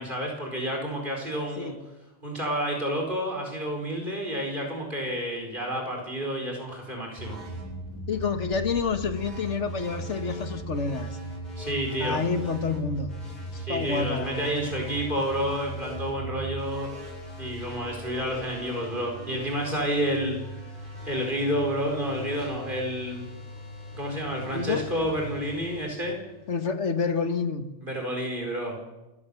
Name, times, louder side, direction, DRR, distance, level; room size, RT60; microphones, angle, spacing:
voice 1, 0.0-1.7 2.2-7.4 11.6-12.2 13.6-16.9 17.4-20.3 21.0-23.2 23.9-26.2 27.8-28.7, equal, 45° right, 0 dB, 5.0 m, -30 dB
sound 1, 7.2-26.7, right 1 dB, 40° left, 8.4 m, -39 dB
voice 2, 8.1-11.2 12.0-13.1 13.7-14.6 24.5-24.9 26.5-27.7, left 5 dB, 80° left, 9 dB, 1.7 m, -28 dB
28.5 x 16.0 x 7.1 m, 1.0 s
omnidirectional pair, 1.2 m